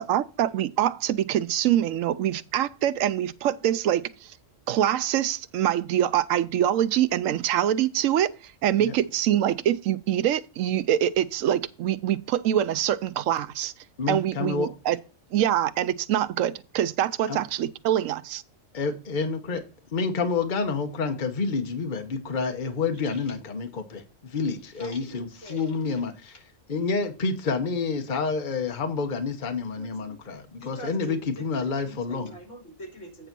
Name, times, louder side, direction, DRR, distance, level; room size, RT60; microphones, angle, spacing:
voice 1, 0.1-4.1 4.7-8.3 8.6-13.7 14.1-15.0 15.3-18.4, right 11 dB, 80° right, 1.0 m, -24 dB
voice 2, 14.0-14.7 17.3-17.4 18.7-19.6 19.9-26.4 26.7-32.3, left 4 dB, 40° left, 1.2 m, -29 dB
voice 3, 24.7-25.7 29.8-30.2 30.6-33.3, equal, 65° left, 3.3 m, -44 dB
9.1 x 4.0 x 6.0 m
omnidirectional pair, 1.3 m